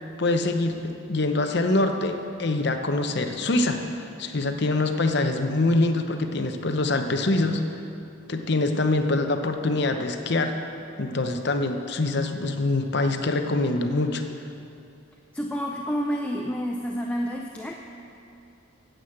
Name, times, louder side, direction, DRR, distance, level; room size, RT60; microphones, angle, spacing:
voice 1, 0.2-7.6 8.3-10.5 11.0-14.2, left 2 dB, 55° left, 6 dB, 0.8 m, -24 dB
voice 2, 15.3-17.7, equal, 5° left, 0 dB, 0.4 m, -29 dB
9.3 x 8.2 x 7.8 m, 2.6 s
head